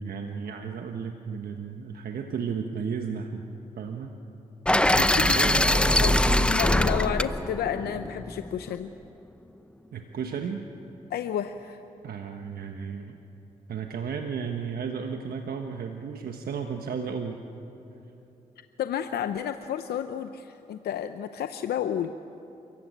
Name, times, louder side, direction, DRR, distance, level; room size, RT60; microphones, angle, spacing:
voice 1, 0.0-3.5 3.8-4.2 4.9-6.5 9.9-10.7 12.0-13.2 13.7-17.4, right 6 dB, 70° right, 4 dB, 1.4 m, -34 dB
sound 1, 4.7-8.7, left 1 dB, 5° left, 0.8 m, -23 dB
voice 2, 6.0-8.9 11.1-11.8 18.8-22.1, left 9 dB, 80° left, 9 dB, 0.7 m, -31 dB
29.5 x 15.0 x 9.1 m, 2.9 s
cardioid pair, 60°, 16 cm